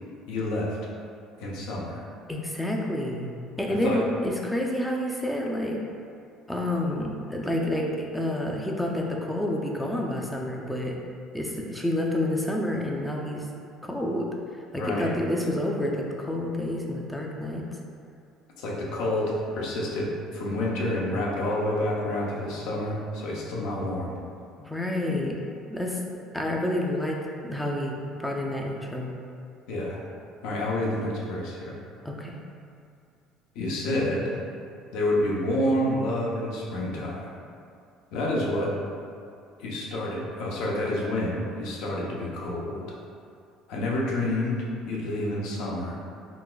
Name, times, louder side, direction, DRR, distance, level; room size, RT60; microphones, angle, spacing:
voice 1, 0.3-0.7 1.4-2.0 3.8-4.0 14.8-15.1 18.6-24.1 29.7-30.0 30.4-31.7 33.5-34.4 34.9-37.3 38.1-38.7 39.6-43.0 43.7-46.0, left 1 dB, 75° left, -4 dB, 0.6 m, -28 dB
voice 2, 2.3-5.8 6.5-10.9 11.3-13.5 13.8-14.3 14.7-17.6 24.6-25.4 25.7-26.0 26.3-27.2 27.4-29.1 32.0-32.4 34.0-34.1, left 1 dB, 5° left, -1 dB, 0.4 m, -29 dB
3.8 x 2.4 x 2.2 m, 2.4 s
cardioid pair, 105°, 0 cm